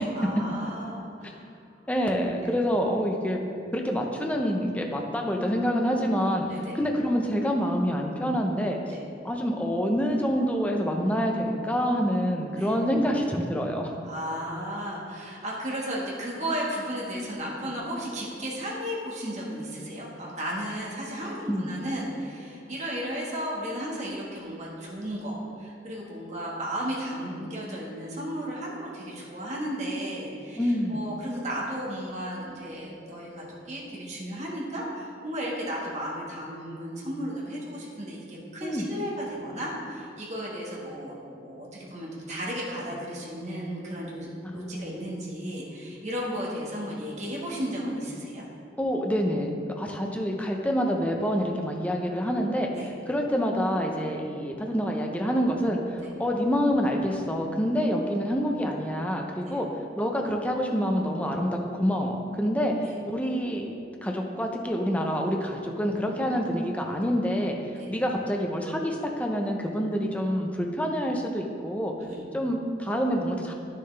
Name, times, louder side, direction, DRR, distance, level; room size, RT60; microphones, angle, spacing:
voice 1, 0.1-1.5 2.4-2.6 6.4-6.8 8.9-9.0 12.5-12.8 14.0-48.4 52.7-52.9 56.0-56.1 59.4-59.6 67.8-67.9 72.0-72.3, equal, 40° right, -4 dB, 1.6 m, -34 dB
voice 2, 1.9-3.4 3.7-6.5 6.8-8.8 9.2-13.9 21.5-21.7 30.6-31.0 38.6-38.9 44.5-44.9 48.8-49.5 49.8-52.7 53.1-59.7 60.0-63.7 64.0-67.6 67.9-71.9 72.3-73.5, equal, 10° left, 1 dB, 0.6 m, -27 dB
9.9 x 6.6 x 3.3 m, 2.5 s
head